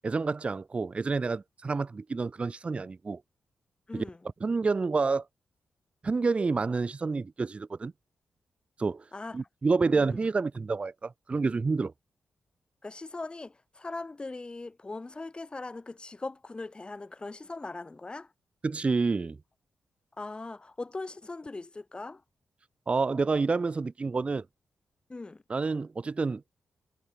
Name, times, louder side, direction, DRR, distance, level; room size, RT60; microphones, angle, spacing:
voice 1, 0.0-3.2 3.9-4.0 4.4-5.2 6.0-7.9 8.8-9.0 9.3-11.9 18.6-19.4 22.9-24.4 25.5-26.4, right 4 dB, 35° right, 0.5 m, -28 dB
voice 2, 3.9-4.3 9.1-9.4 9.9-10.2 12.8-18.3 20.2-22.2 25.1-25.4, left 3 dB, 25° left, 5.4 m, -40 dB
cardioid pair, 90°, 4 cm